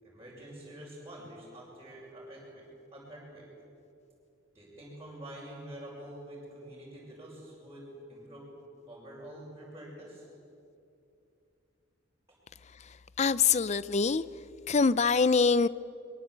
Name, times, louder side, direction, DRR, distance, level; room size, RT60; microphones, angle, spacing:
voice 1, 0.0-3.4 4.5-8.5 8.9-10.3, right 1 dB, 15° right, -8 dB, 6.4 m, -47 dB
voice 2, 12.6-14.2 14.7-15.7, left 5 dB, 35° left, 17 dB, 0.5 m, -25 dB
23.5 x 23.0 x 8.1 m, 2.6 s
head